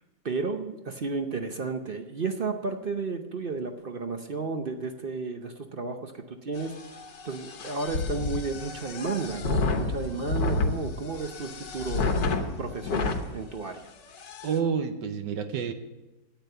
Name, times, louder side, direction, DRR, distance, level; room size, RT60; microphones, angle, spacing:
voice 1, 0.2-6.7 7.2-12.2 12.6-13.8, right 4 dB, 55° right, 6 dB, 0.6 m, -33 dB
sound 1, 6.6-13.2 13.8-13.9 14.1-14.6, left 3 dB, 70° left, 1.8 m, -30 dB
voice 2, 14.4-15.7, right 6 dB, 75° right, 8 dB, 1.4 m, -29 dB
10.0 x 8.9 x 8.0 m, 1.0 s
omnidirectional pair, 2.0 m